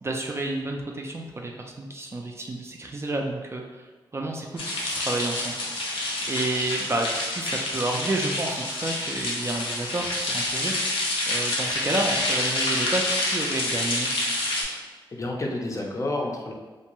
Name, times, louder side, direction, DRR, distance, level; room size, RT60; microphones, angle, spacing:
voice 1, 0.0-5.6 5.9-6.0 6.3-14.1, right 2 dB, 30° right, 1 dB, 0.3 m, -30 dB
sound 1, 4.6-14.6, left 1 dB, 85° left, 0.6 m, -28 dB
voice 2, 15.1-16.5, left 2 dB, 35° left, 0 dB, 0.5 m, -30 dB
2.6 x 2.3 x 3.0 m, 1.3 s
cardioid pair, 70°, 9 cm